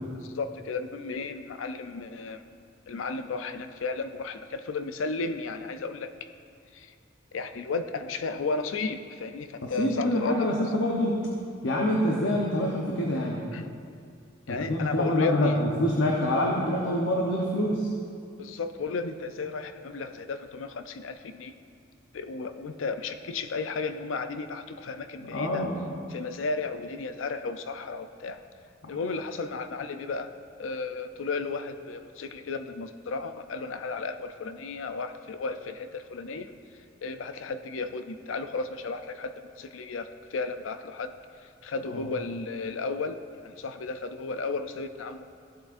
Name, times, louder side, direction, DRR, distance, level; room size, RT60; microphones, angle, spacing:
voice 1, 0.2-2.4 2.9-6.1 6.7-6.9 7.3-10.5 13.5-13.7 14.5-15.6 18.4-21.5 22.1-25.7 26.1-28.4 28.9-30.3 30.6-36.5 37.0-41.1 41.4-43.2 43.4-45.2, left 4 dB, 85° left, 9 dB, 0.5 m, -34 dB
voice 2, 9.6-11.3 11.6-13.4 14.5-17.9 25.2-25.9 41.9-42.0, left 1 dB, 65° left, -2 dB, 0.9 m, -26 dB
15.0 x 7.7 x 2.6 m, 2.3 s
head